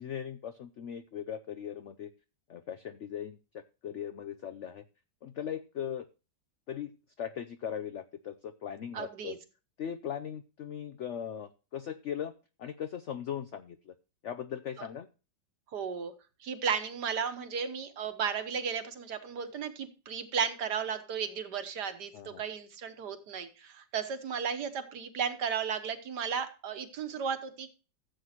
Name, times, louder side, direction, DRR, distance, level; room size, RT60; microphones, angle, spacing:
voice 1, 0.0-2.1 2.5-4.8 5.2-6.1 6.7-6.9 7.2-9.4 9.8-12.3 12.6-13.9 14.2-15.1 22.1-22.4, left 9 dB, 90° left, 10 dB, 0.6 m, -39 dB
voice 2, 8.9-9.4 14.8-14.9 15.7-16.1 16.4-27.7, right 7 dB, 65° right, 9 dB, 1.7 m, -34 dB
15.0 x 7.9 x 2.9 m, 0.32 s
omnidirectional pair, 2.0 m